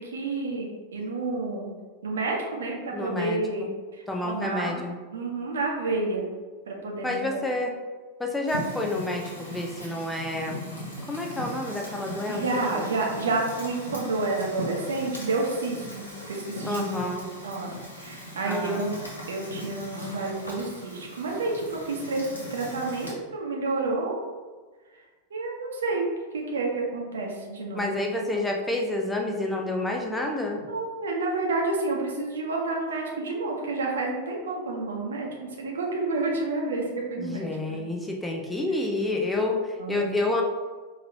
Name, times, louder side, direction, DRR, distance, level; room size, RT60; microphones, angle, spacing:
voice 1, 0.0-1.8 2.0-3.7 4.2-4.8 5.1-6.3 6.7-7.4 12.3-16.8 17.4-19.0 19.3-22.2 22.5-24.3 25.3-26.0 26.3-27.9 28.3-28.4 30.7-37.9 39.8-40.1, right 3 dB, 65° right, -1 dB, 0.8 m, -29 dB
voice 2, 2.9-3.4 4.1-4.9 7.0-7.7 8.2-10.6 11.1-12.4 16.6-17.3 18.5-18.9 27.7-30.6 37.2-40.4, left 2 dB, 5° left, 1 dB, 0.5 m, -29 dB
Fire, 8.5-23.1, equal, 75° left, 1.2 m, -39 dB
5.2 x 2.8 x 2.8 m, 1.4 s
figure-of-eight pair, 90°, 0 cm